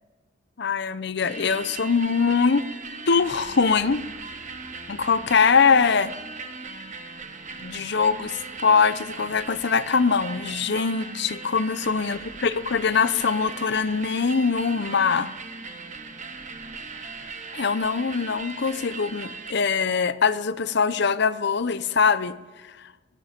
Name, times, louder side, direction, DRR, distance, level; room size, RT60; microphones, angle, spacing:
voice 1, 0.6-2.7 3.1-4.0 4.9-6.1 7.6-15.3 17.5-22.4 22.8-22.9, left 5 dB, 55° left, 14 dB, 0.7 m, -22 dB
sound 1, 1.3-19.5, right 4 dB, 35° right, 1.3 m, -38 dB
19.5 x 13.0 x 5.2 m, 1.3 s
head